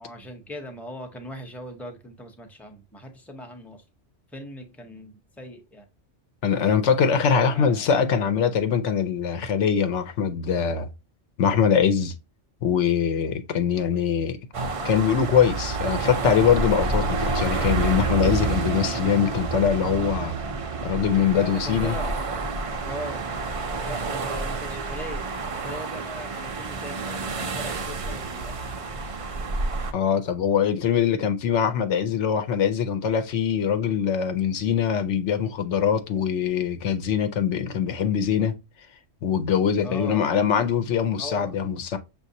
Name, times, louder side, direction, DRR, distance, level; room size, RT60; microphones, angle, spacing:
voice 1, 0.0-3.8 4.3-5.9 7.3-7.9 21.3-22.1 22.8-23.3 23.8-25.3 25.6-28.6 39.8-40.2 41.2-41.5, equal, ahead, 0.6 m, -39 dB
voice 2, 6.4-10.9 11.4-12.2 12.6-14.4 14.8-20.4 20.8-22.0 29.9-38.5 39.2-42.0, left 7 dB, 75° left, 1.0 m, -23 dB
sound 1, 14.5-29.9, right 3 dB, 50° right, 0.4 m, -29 dB
5.9 x 2.5 x 2.7 m
omnidirectional pair, 1.3 m